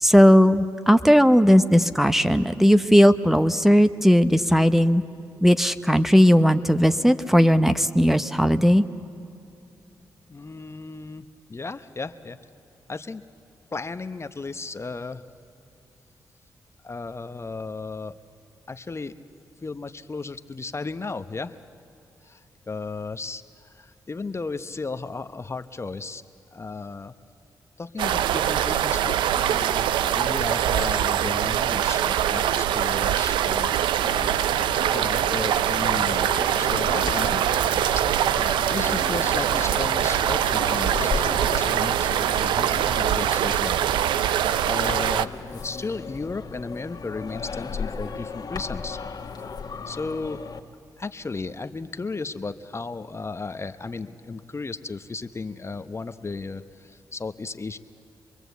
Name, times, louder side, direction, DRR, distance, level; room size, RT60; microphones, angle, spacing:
voice 1, 0.0-5.0 5.4-8.8, equal, 5° right, 10 dB, 1.0 m, -17 dB
voice 2, 10.3-12.4 12.9-13.2 13.7-15.2 16.8-18.2 18.7-19.1 19.6-21.6 22.2-26.2 26.5-27.1 27.8-33.7 34.9-37.4 38.7-43.8 44.6-49.0 49.8-50.5 51.0-57.8, left 4 dB, 35° left, 10 dB, 0.9 m, -34 dB
sound 1, 28.0-45.3, right 10 dB, 85° right, 0.5 m, -23 dB
sound 2, 34.0-50.6, left 5 dB, 60° left, 1.7 m, -36 dB
26.0 x 21.5 x 8.2 m, 2.7 s
supercardioid pair, 45°, 8 cm